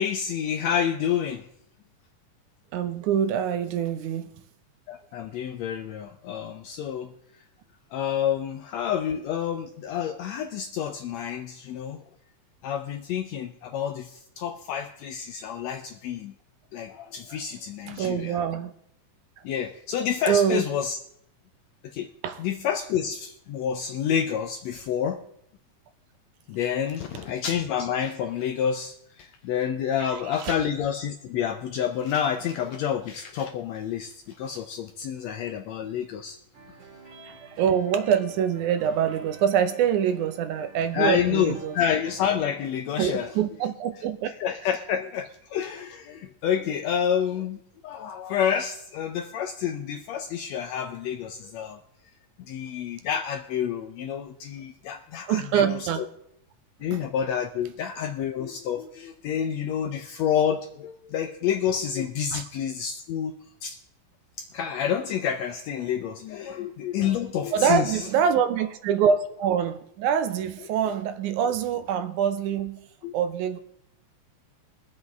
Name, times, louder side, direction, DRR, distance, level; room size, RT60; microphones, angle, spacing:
voice 1, 0.0-1.4 4.9-7.1 7.9-12.0 12.6-16.3 16.7-18.4 19.4-21.0 21.9-22.1 22.4-25.2 26.5-36.4 40.9-43.4 44.0-47.6 47.8-51.8 52.5-56.0 56.8-63.3 63.6-63.8 64.4-68.1 73.0-73.1, left 8 dB, 80° left, 7 dB, 1.6 m, -29 dB
voice 2, 2.7-4.3 17.9-18.7 20.3-20.6 22.2-22.4 30.0-30.6 37.4-41.7 43.0-44.4 55.3-56.0 56.9-57.0 62.3-62.4 67.5-72.8 73.1-73.6, right 8 dB, 75° right, 9 dB, 2.1 m, -25 dB
sound 1, 36.5-42.4, right 4 dB, 50° right, 2.8 m, -47 dB
22.5 x 7.9 x 3.5 m, 0.72 s
omnidirectional pair, 3.7 m